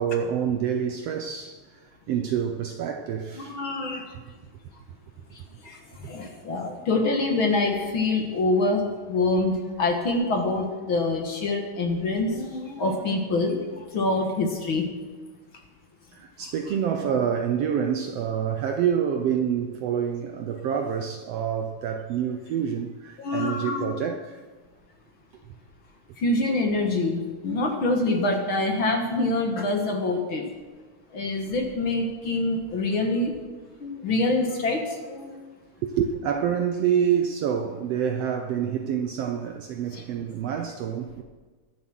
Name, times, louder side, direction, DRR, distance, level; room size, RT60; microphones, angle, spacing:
voice 1, 0.0-3.6 16.1-24.4 35.8-41.2, right 8 dB, 75° right, 1.5 m, -27 dB
voice 2, 3.3-4.2 5.3-14.8 23.2-23.8 26.2-30.5 31.1-33.3 33.8-35.4 39.9-40.0, left 2 dB, 50° left, 1.9 m, -26 dB
21.5 x 7.3 x 6.2 m
omnidirectional pair, 3.4 m